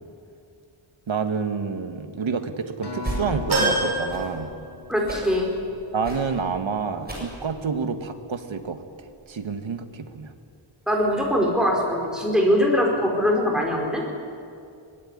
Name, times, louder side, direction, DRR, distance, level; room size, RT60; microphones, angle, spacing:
voice 1, 1.1-4.5 5.9-10.3, right 5 dB, 70° right, 7 dB, 1.8 m, -29 dB
Acoustic guitar, 2.8-7.2 7.9-8.0, left 4 dB, 55° left, 5.0 m, -40 dB
sound 1, 3.0-3.2 4.0-4.4 5.0-5.3 6.0-6.3 7.0-7.3 8.0-8.1, right 1 dB, 20° right, 7.3 m, -34 dB
sound 2, 3.5-5.1 5.6-5.7 6.9-7.0, right 2 dB, 50° right, 7.8 m, -26 dB
voice 2, 4.9-5.5 10.9-14.0, equal, ahead, -1 dB, 4.7 m, -22 dB
23.5 x 19.5 x 9.9 m, 2.4 s
wide cardioid pair, 160°, 49 cm